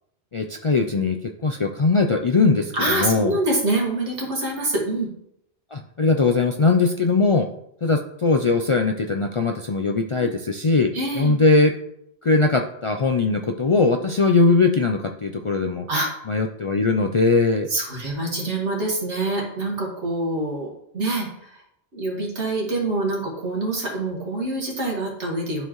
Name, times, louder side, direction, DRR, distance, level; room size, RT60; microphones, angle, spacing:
voice 1, 0.3-1.2 1.4-3.4 5.7-7.5 7.8-11.7 12.2-15.9 16.3-17.7, left 3 dB, 55° left, 4 dB, 0.3 m, -20 dB
voice 2, 2.7-5.1 10.2-10.3 10.9-11.4 15.9-16.1 17.7-20.7 20.9-21.6 21.9-25.7, right 2 dB, 85° right, -2 dB, 2.1 m, -25 dB
11.0 x 4.5 x 3.1 m, 0.76 s
omnidirectional pair, 1.1 m